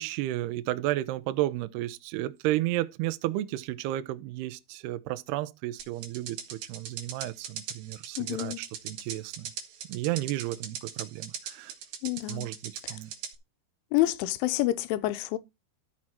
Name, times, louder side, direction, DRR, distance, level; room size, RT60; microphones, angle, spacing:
voice 1, 0.0-9.5 9.9-11.7 12.3-13.1, right 16 dB, 90° right, 2.3 m, -32 dB
sound 1, 5.8-13.3, right 8 dB, 65° right, 2.8 m, -39 dB
voice 2, 8.2-8.6 12.0-12.5 13.9-15.4, left 16 dB, 80° left, 3.1 m, -28 dB
13.0 x 6.1 x 4.3 m
omnidirectional pair, 5.8 m